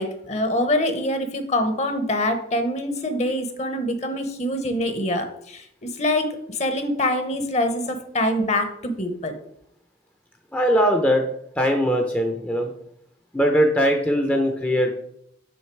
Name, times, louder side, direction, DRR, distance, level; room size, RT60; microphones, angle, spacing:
voice 1, 0.0-9.4, left 1 dB, 40° left, 7 dB, 0.9 m, -25 dB
voice 2, 10.5-11.2 11.6-12.7 13.3-14.9, equal, 10° left, 3 dB, 0.6 m, -20 dB
6.4 x 5.6 x 4.5 m, 0.73 s
head